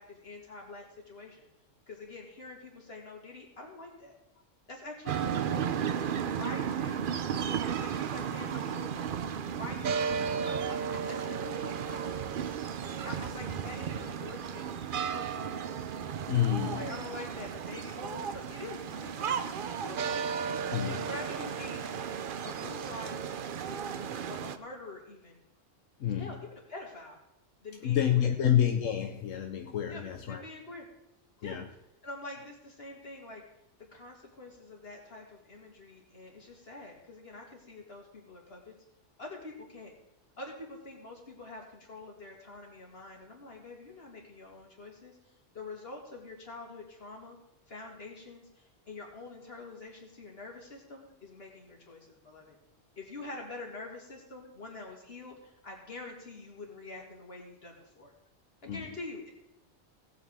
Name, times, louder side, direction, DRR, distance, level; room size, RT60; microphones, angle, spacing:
voice 1, 0.0-1.5 1.9-4.1 4.7-5.7 6.4-7.2 7.8-9.1 9.6-12.5 13.0-14.7 14.9-15.7 16.6-20.2 20.9-21.8 22.4-23.4 24.3-25.4 26.2-27.2 27.6-28.3 29.9-30.9 31.4-31.6 32.0-33.4 33.9-38.7 39.2-39.9 40.4-45.2 45.5-47.4 47.7-52.6 53.0-58.1 58.6-59.3, left 2 dB, 50° left, 0 dB, 2.7 m, -46 dB
sound 1, 5.0-24.6, right 7 dB, 55° right, 0.7 m, -34 dB
voice 2, 16.3-17.0 20.7-21.0 26.0-26.4 27.8-30.4 31.4-31.6 58.7-59.0, left 10 dB, 85° left, 4 dB, 1.2 m, -29 dB
18.0 x 8.3 x 3.6 m, 0.85 s
omnidirectional pair, 1.3 m